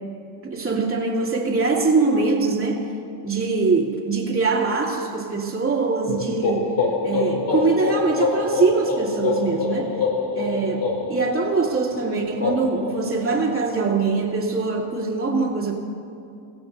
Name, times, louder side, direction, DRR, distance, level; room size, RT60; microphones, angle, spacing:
voice 1, 0.4-2.8 3.2-6.8 7.0-10.0 10.3-15.7, right 4 dB, 30° right, -2 dB, 2.7 m, -23 dB
sound 1, 6.1-13.8, left 3 dB, 50° left, 3.2 m, -26 dB
24.5 x 15.5 x 2.7 m, 2.7 s
cardioid pair, 115°, 43 cm